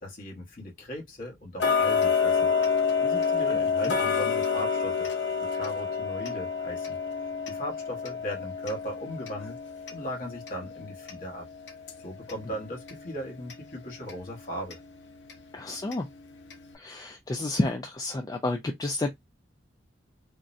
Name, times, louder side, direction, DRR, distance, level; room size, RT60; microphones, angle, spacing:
voice 1, 0.0-2.5 3.0-5.1 5.5-7.0 7.5-9.6 9.9-11.5 12.0-14.8, equal, 45° left, 1.0 m, -38 dB
Tick-tock, 1.6-12.4 12.9-13.0 13.5-13.6 14.1-14.2 14.7-14.8 15.3-15.4 15.9-16.0 16.5-16.6, left 6 dB, 70° left, 0.7 m, -28 dB
voice 2, 15.5-16.1 16.7-19.1, left 2 dB, 20° left, 0.3 m, -30 dB
3.6 x 2.0 x 2.5 m
head